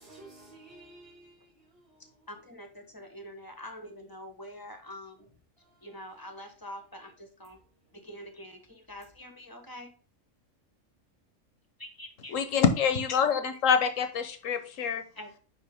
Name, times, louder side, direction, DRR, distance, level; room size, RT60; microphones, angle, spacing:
voice 1, 0.0-1.9 5.6-6.0, right 2 dB, 25° right, 2.1 m, -53 dB
voice 2, 2.3-5.2 5.8-7.6 8.0-9.9 11.8-12.4 15.2-15.3, left 1 dB, 20° left, 0.9 m, -45 dB
voice 3, 12.3-15.0, left 6 dB, 80° left, 1.3 m, -26 dB
9.7 x 3.4 x 3.5 m
omnidirectional pair, 1.3 m